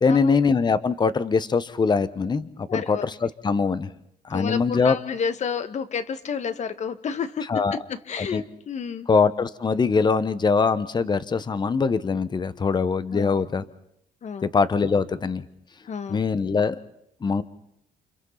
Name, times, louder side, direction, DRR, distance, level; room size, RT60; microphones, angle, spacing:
voice 1, 0.0-3.9 4.3-5.0 7.5-7.8 8.2-8.4 9.1-13.6 14.4-15.4 16.1-16.8 17.2-17.4, left 5 dB, 25° left, 14 dB, 1.2 m, -22 dB
voice 2, 2.7-3.1 4.3-7.5 7.9-9.1 13.1-13.4 14.2-14.5 15.8-16.2, left 6 dB, 45° left, 11 dB, 1.7 m, -30 dB
29.0 x 29.0 x 4.1 m, 0.75 s
cardioid pair, 110°, 17 cm